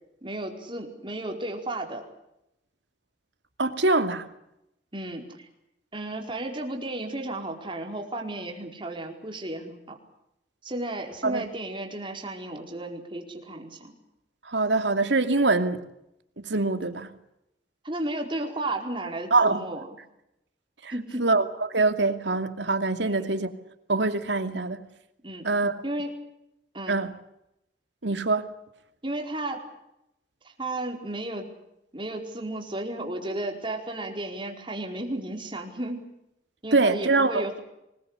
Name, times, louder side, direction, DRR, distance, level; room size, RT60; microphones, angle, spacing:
voice 1, 0.2-2.0 4.9-5.5 5.9-10.0 10.6-13.9 17.8-19.9 20.9-21.3 23.0-23.3 25.2-25.5 25.8-26.1 26.7-27.0 29.0-29.6 30.4-31.5 31.9-36.0 36.6-37.6, right 1 dB, 30° right, 4.8 m, -33 dB
voice 2, 3.6-4.3 11.2-11.4 14.5-15.8 16.4-17.1 19.3-19.6 20.8-20.9 21.2-23.5 23.9-24.8 25.4-25.8 26.9-27.1 28.0-28.5 36.7-37.4, right 3 dB, 85° right, 2.5 m, -24 dB
25.5 x 21.0 x 8.3 m
head